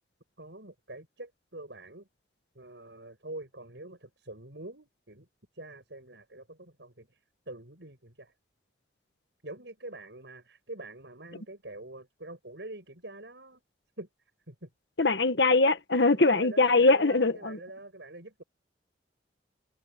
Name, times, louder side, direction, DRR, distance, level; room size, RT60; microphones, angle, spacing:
voice 1, 0.4-2.1 2.5-5.3 5.5-7.2 7.5-8.3 9.4-13.6 14.0-14.1 14.5-14.7 16.1-18.4, right 2 dB, 65° right, 6.6 m, -45 dB
voice 2, 15.0-17.6, left 3 dB, 65° left, 1.6 m, -22 dB
head